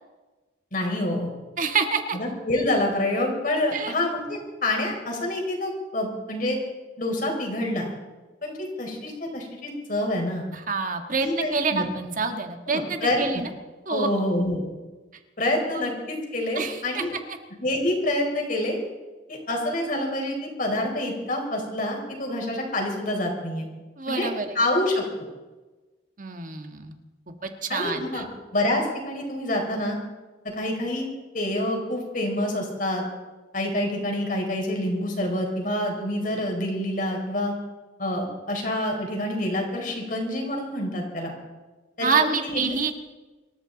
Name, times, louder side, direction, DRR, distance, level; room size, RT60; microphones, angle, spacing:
voice 1, 0.7-1.3 2.1-6.6 7.0-7.9 8.4-10.5 11.2-11.9 12.7-13.4 13.9-14.6 15.4-17.1 17.6-18.8 19.3-23.7 24.1-24.3 24.5-25.0 27.7-28.3 28.5-30.0 30.6-31.1 31.3-33.0 33.5-37.5 38.0-41.3 42.0-42.9, left 1 dB, 50° left, 1 dB, 4.6 m, -27 dB
voice 2, 1.6-2.2 3.7-3.9 10.5-13.5 13.8-14.1 15.7-15.8 16.5-17.4 24.0-24.6 26.2-26.9 27.4-28.2 42.0-42.9, right 5 dB, 45° right, 6 dB, 1.6 m, -27 dB
26.0 x 14.0 x 4.0 m, 1.2 s
head